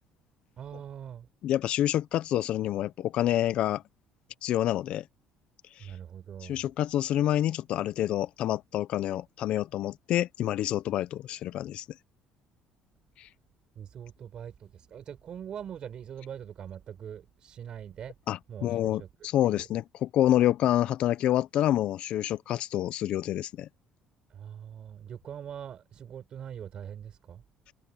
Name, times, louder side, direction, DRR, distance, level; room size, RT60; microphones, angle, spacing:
voice 1, 0.6-1.3 5.8-6.7 13.8-18.1 18.5-19.1 19.4-19.7 24.3-27.4, right 9 dB, 50° right, 5.1 m, -42 dB
voice 2, 1.4-3.8 4.4-5.0 5.8-5.9 6.4-11.8 13.2-13.3 18.3-23.7, left 12 dB, 65° left, 0.6 m, -27 dB
cardioid pair, 105°, 2 cm